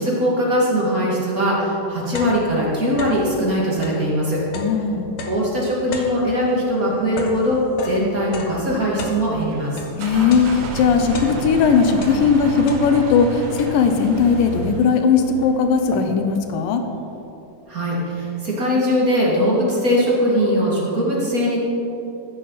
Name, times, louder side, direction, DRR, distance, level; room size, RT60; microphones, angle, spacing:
voice 1, 0.0-4.4 5.3-9.8 17.7-21.6, equal, 30° right, -5 dB, 2.1 m, -20 dB
sound 1, 1.9-3.4 3.7-10.0 10.3-11.7 12.0-13.2 13.6-14.1 14.7-14.8 15.1-16.4, left 3 dB, 60° left, 1.4 m, -35 dB
voice 2, 4.5-5.1 10.0-16.8, left 5 dB, 90° left, 6 dB, 2.5 m, -18 dB
sound 2, 9.5-15.1, right 2 dB, 85° right, 3.0 m, -31 dB
sound 3, 10.9-17.2, right 1 dB, 45° left, 3.7 m, -39 dB
14.5 x 10.5 x 4.1 m, 3.0 s
omnidirectional pair, 3.8 m